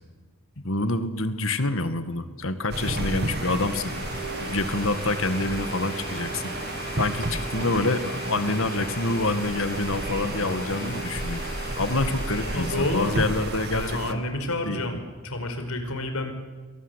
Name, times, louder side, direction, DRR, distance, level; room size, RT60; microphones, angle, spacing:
voice 1, 0.6-3.9 4.4-6.5 7.0-11.4 11.8-14.2 14.7-15.0, left 2 dB, 65° left, 10 dB, 2.0 m, -27 dB
Domestic sounds home sounds, 2.5-2.6 3.0-14.0, left 1 dB, 40° left, 5.8 m, -37 dB
sound 1, 2.7-14.1, right 2 dB, 45° right, 2.0 m, -32 dB
voice 2, 12.5-13.2 13.7-15.0 15.2-16.3, left 1 dB, 90° left, 7 dB, 5.3 m, -29 dB
29.0 x 23.0 x 8.3 m, 1.3 s
head